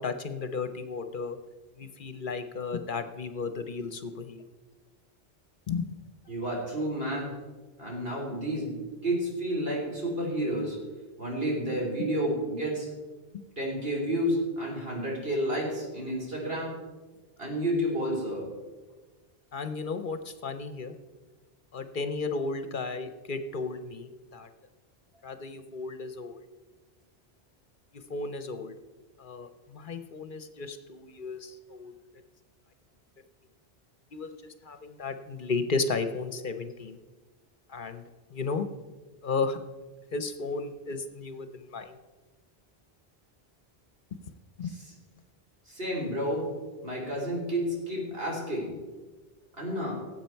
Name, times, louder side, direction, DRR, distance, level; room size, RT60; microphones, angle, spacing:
voice 1, 0.0-1.4 1.8-4.4 5.7-5.9 12.0-12.1 19.5-21.0 21.7-24.5 25.2-26.4 28.1-28.7 29.2-31.9 34.1-34.3 34.6-37.0 37.7-38.0 38.3-38.7 39.2-39.6 40.1-42.0 44.6-44.7, left 4 dB, 55° left, 10 dB, 0.9 m, -34 dB
voice 2, 6.3-7.3 7.8-10.8 11.2-12.9 13.6-16.7 17.4-18.5 44.6-44.7 45.7-46.5 46.8-48.7 49.5-49.9, equal, 65° right, -2 dB, 3.6 m, -30 dB
18.0 x 7.9 x 4.5 m, 1.3 s
omnidirectional pair, 1.0 m